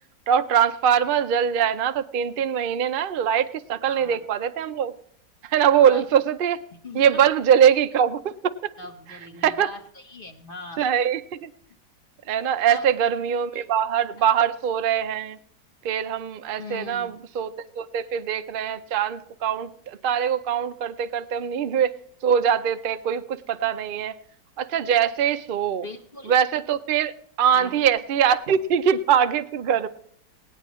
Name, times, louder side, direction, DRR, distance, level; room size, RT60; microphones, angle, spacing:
voice 1, 0.3-4.9 5.4-6.6 6.9-8.7 9.4-9.7 10.8-11.5 12.3-15.4 15.8-21.9 22.2-24.2 24.6-25.9 26.3-27.1 27.4-29.9, right 8 dB, 80° right, 10 dB, 0.4 m, -22 dB
voice 2, 3.8-4.2 5.7-6.1 6.8-7.2 8.8-10.8 12.7-12.8 13.5-13.6 16.5-17.2 25.7-26.3 27.5-27.8, left 3 dB, 35° left, 5 dB, 1.1 m, -40 dB
19.0 x 17.5 x 3.1 m, 0.62 s
omnidirectional pair, 1.9 m